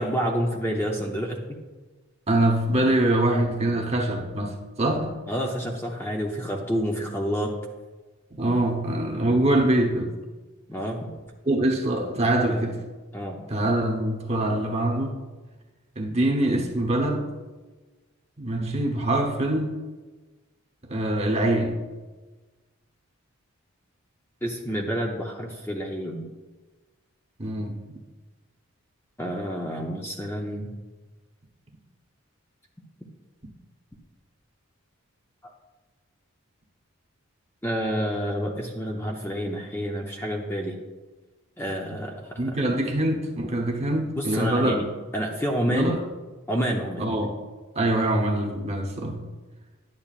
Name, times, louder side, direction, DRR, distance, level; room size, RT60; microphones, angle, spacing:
voice 1, 0.0-1.4 5.3-7.5 10.7-11.1 12.5-12.6 13.1-13.4 24.4-26.3 29.2-30.7 35.4-35.5 37.6-40.8 41.6-42.1 42.4-42.5 44.2-44.8 45.1-46.0 46.5-47.1, equal, 10° left, 0 dB, 0.6 m, -28 dB
voice 2, 2.3-5.2 8.3-10.1 11.5-12.8 13.5-15.2 16.0-17.3 18.4-19.8 20.9-21.8 27.4-27.8 42.4-44.8 45.7-46.0 47.0-47.3 47.7-49.2, right 1 dB, 30° right, 1 dB, 1.0 m, -24 dB
11.5 x 8.9 x 2.4 m, 1.3 s
head